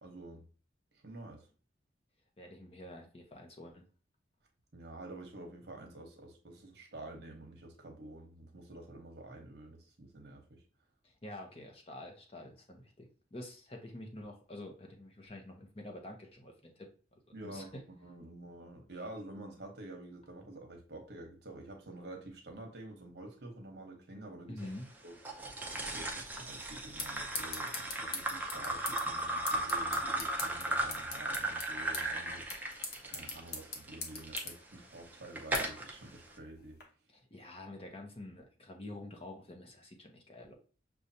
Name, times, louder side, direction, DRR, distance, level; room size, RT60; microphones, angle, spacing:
voice 1, 0.0-0.4 1.0-1.5 4.7-10.6 17.3-17.7 18.0-24.7 25.0-25.5 25.9-36.8, right 2 dB, 60° right, 1.0 m, -49 dB
voice 2, 2.4-3.8 11.0-17.8 24.5-24.9 37.1-40.5, left 1 dB, 30° left, 0.7 m, -48 dB
sound 1, 25.2-34.4 35.0-35.9, right 1 dB, 10° right, 0.5 m, -36 dB
mysound Regenboog Abdillah, 26.4-36.8, left 3 dB, 60° left, 1.0 m, -44 dB
6.4 x 2.3 x 2.7 m
head